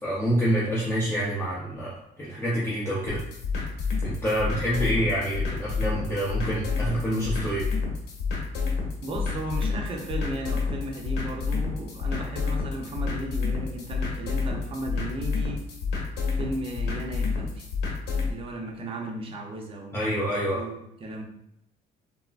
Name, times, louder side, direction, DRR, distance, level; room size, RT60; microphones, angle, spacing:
voice 1, 0.0-3.2 4.0-7.7 19.9-20.7, equal, 15° left, -7 dB, 0.7 m, -27 dB
sound 1, 3.1-18.3, left 4 dB, 80° left, 1.0 m, -29 dB
voice 2, 9.0-15.6 16.3-17.7 18.2-20.1 20.5-21.2, right 1 dB, 35° right, 0 dB, 0.6 m, -35 dB
3.5 x 2.0 x 2.4 m, 0.79 s
cardioid pair, 110°, 17 cm